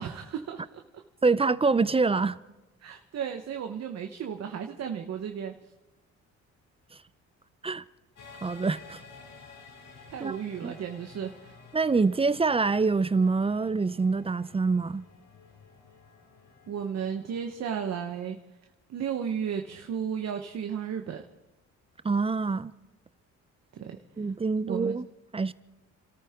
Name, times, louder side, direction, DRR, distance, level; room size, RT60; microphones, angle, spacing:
voice 1, 0.0-1.0 2.8-5.5 10.1-11.5 16.7-18.4 18.9-21.2 23.7-24.0 24.7-25.0, right 7 dB, 60° right, 1.1 m, -34 dB
voice 2, 1.2-2.4 7.6-7.8 8.4-9.0 10.2-10.4 10.6-10.7 11.7-15.0 22.0-22.7 24.2-25.1 25.3-25.5, right 4 dB, 20° right, 0.5 m, -25 dB
sound 1, 8.2-17.4, left 4 dB, 65° left, 4.6 m, -52 dB
29.5 x 13.5 x 3.7 m
cardioid pair, 90°, 30 cm